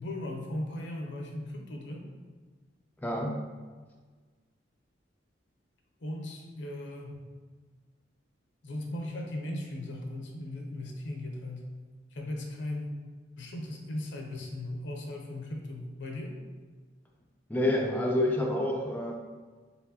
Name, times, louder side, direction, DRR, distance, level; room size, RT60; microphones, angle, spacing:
voice 1, 0.0-2.1 6.0-7.2 8.6-11.7 12.1-12.9 13.4-16.4, left 1 dB, 70° left, 1 dB, 0.7 m, -37 dB
voice 2, 3.0-3.4 17.5-19.1, left 1 dB, 10° left, 0 dB, 0.3 m, -28 dB
4.3 x 3.4 x 2.8 m, 1.4 s
head